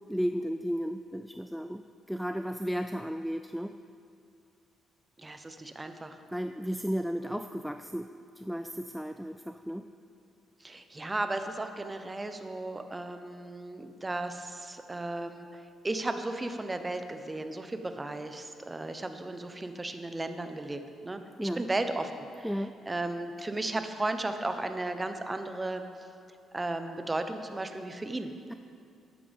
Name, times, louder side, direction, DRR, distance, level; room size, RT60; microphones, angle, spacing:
voice 1, 0.1-3.7 6.3-8.1 8.4-9.8 21.4-21.6 22.4-22.8, equal, ahead, 7 dB, 0.3 m, -34 dB
voice 2, 5.2-6.2 10.6-22.1 22.4-25.8 26.5-28.3, right 2 dB, 20° right, 7 dB, 0.8 m, -35 dB
14.0 x 11.0 x 3.5 m, 2.4 s
cardioid pair, 90°, 0 cm